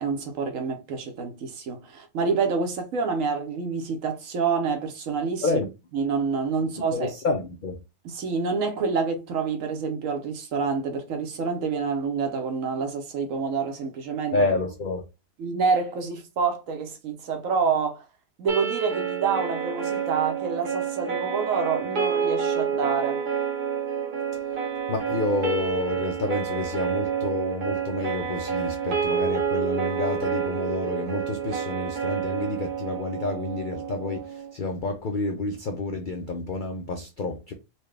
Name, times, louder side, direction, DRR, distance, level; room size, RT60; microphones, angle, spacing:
voice 1, 0.0-5.4 5.9-7.1 8.0-14.3 15.4-18.1 18.4-23.2, right 5 dB, 65° right, 1.1 m, -27 dB
voice 2, 6.9-7.8 14.3-15.0 24.9-37.5, left 3 dB, 75° left, 0.4 m, -29 dB
sound 1, 18.5-34.5, right 7 dB, 80° right, 1.6 m, -28 dB
4.3 x 2.3 x 3.2 m
omnidirectional pair, 1.6 m